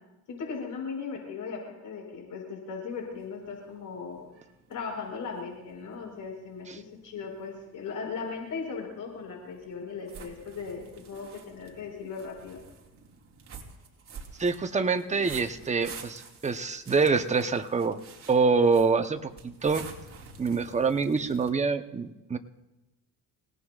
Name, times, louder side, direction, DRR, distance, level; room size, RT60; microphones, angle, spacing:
voice 1, 0.3-4.3 4.7-12.6, left 5 dB, 70° left, 0 dB, 6.6 m, -38 dB
sound 1, 2.9-21.5, right 5 dB, 45° right, 3.5 m, -50 dB
voice 2, 14.4-18.0 18.3-19.9 20.4-22.4, right 4 dB, 20° right, 6 dB, 1.0 m, -25 dB
28.0 x 18.0 x 2.5 m, 0.99 s
cardioid pair, 110°, 33 cm